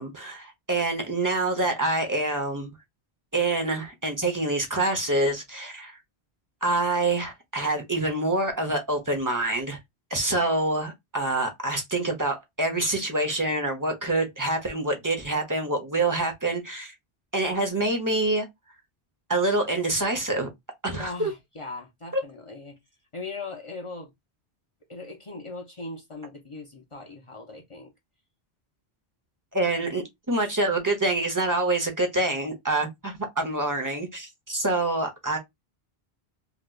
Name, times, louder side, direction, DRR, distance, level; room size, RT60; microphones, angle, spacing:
voice 1, 0.0-2.7 3.3-6.0 6.6-9.8 10.1-16.9 17.3-18.5 19.3-20.5 20.8-21.3 22.1-22.2 29.5-35.4, right 2 dB, 20° right, 0.9 m, -26 dB
voice 2, 20.9-22.8 23.1-24.1 24.9-27.9, left 3 dB, 35° left, 0.7 m, -39 dB
3.2 x 2.9 x 2.4 m
omnidirectional pair, 1.0 m